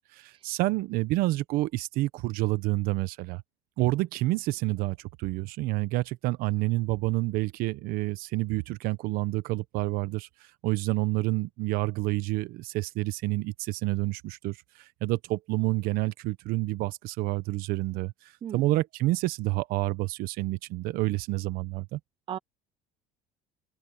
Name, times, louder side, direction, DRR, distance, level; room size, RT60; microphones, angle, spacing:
voice 1, 0.0-3.4 3.8-10.3 10.6-22.0, right 19 dB, 70° right, 1.0 m, -29 dB
voice 2, 18.4-18.7 22.3-22.4, right 10 dB, 35° right, 0.6 m, -36 dB
cardioid pair, 125°, 16 cm